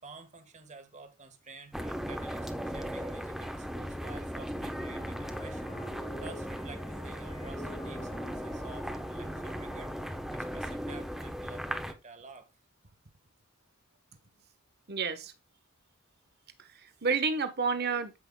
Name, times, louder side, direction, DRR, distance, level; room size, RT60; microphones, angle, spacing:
voice 1, 0.0-5.8 6.2-12.5, right 4 dB, 35° right, 1.6 m, -51 dB
sound 1, 1.7-11.9, equal, ahead, 1.0 m, -37 dB
Wind instrument woodwind instrument, 4.6-10.4, left 1 dB, 35° left, 1.6 m, -50 dB
voice 2, 14.9-15.3 16.6-18.2, right 5 dB, 50° right, 1.2 m, -30 dB
13.5 x 5.8 x 2.3 m
head